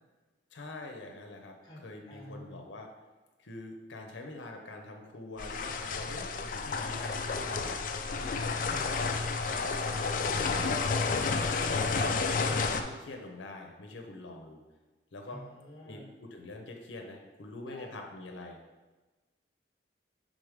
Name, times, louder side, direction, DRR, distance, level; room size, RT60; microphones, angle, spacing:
voice 1, 0.5-2.9 3.4-7.8 8.1-8.8 9.4-10.8 11.1-12.0 12.3-14.6 15.1-15.4 15.8-18.6, left 2 dB, 85° left, 2 dB, 0.7 m, -44 dB
voice 2, 1.6-2.7 8.5-9.0 15.3-16.1 17.7-17.9, equal, 25° left, -2 dB, 1.2 m, -49 dB
sound 1, 5.4-12.8, left 4 dB, 45° left, 0.4 m, -31 dB
4.8 x 3.9 x 5.0 m, 1.2 s
head